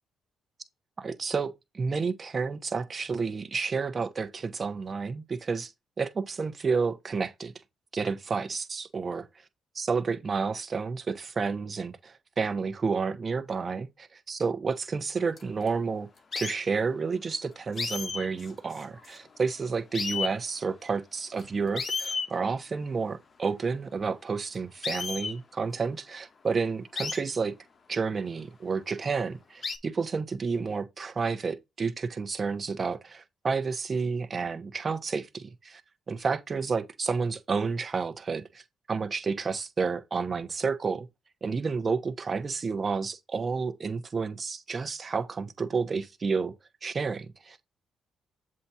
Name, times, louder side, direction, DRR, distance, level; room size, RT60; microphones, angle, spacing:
voice 1, 1.0-5.7 6.0-7.5 7.9-9.3 9.7-16.1 16.3-27.5 27.9-35.8 36.1-38.6 38.9-41.1 41.4-46.5 46.8-47.6, right 5 dB, 35° right, 1.0 m, -30 dB
sound 1, 15.4-15.7 16.3-16.6 17.8-19.4 19.6-19.7 19.9-20.4 21.4-21.5 21.8-22.3 24.8-25.4 27.0-27.2 28.3-28.4 29.6-29.8, left 5 dB, 40° left, 0.9 m, -33 dB
7.6 x 2.9 x 4.7 m
cardioid pair, 90°, 0 cm